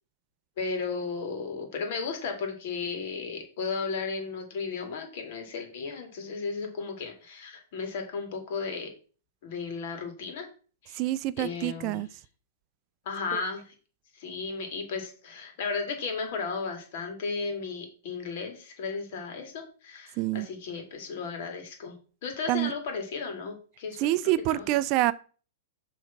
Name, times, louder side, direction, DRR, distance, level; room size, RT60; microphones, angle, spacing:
voice 1, 0.6-8.9 9.4-10.5 10.8-11.0 11.4-12.1 13.0-13.7 14.1-24.0 24.2-24.7, left 4 dB, 55° left, 2.5 m, -34 dB
voice 2, 10.9-12.1 13.3-13.4 20.2-20.5 22.5-22.7 24.0-25.1, right 16 dB, 40° right, 0.4 m, -26 dB
6.3 x 3.6 x 5.8 m
hypercardioid pair, 115°, 0 cm